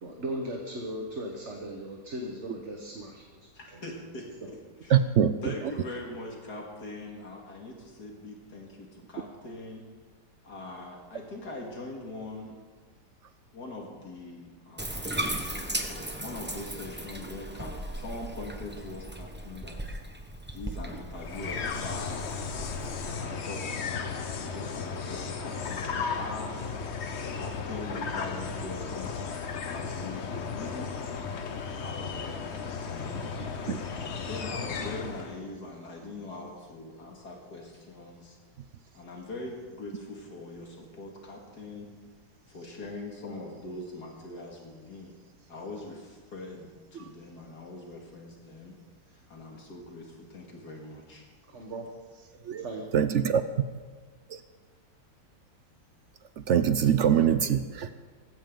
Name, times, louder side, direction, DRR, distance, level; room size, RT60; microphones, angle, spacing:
voice 1, 0.0-3.8 4.4-4.5 51.5-51.9 52.5-52.9, right 1 dB, 45° right, 1 dB, 1.7 m, -38 dB
voice 2, 3.5-5.0 5.4-9.9 10.4-12.6 13.5-15.1 15.5-20.0 20.5-22.3 23.0-26.6 27.3-30.9 31.8-32.4 32.8-33.6 34.1-38.4 38.9-41.9 42.5-45.2 45.5-48.8 49.1-51.2, left 2 dB, 70° left, 0 dB, 2.6 m, -42 dB
voice 3, 4.9-5.4 33.7-33.8 52.5-52.6 52.9-53.4 56.5-57.9, right 8 dB, 65° right, 11 dB, 0.7 m, -23 dB
Bathtub (filling or washing), 14.8-23.1, right 1 dB, 10° right, 0.8 m, -37 dB
sound 1, 21.2-35.4, left 5 dB, 45° left, 1.1 m, -35 dB
18.0 x 16.0 x 3.9 m, 1.5 s
omnidirectional pair, 1.8 m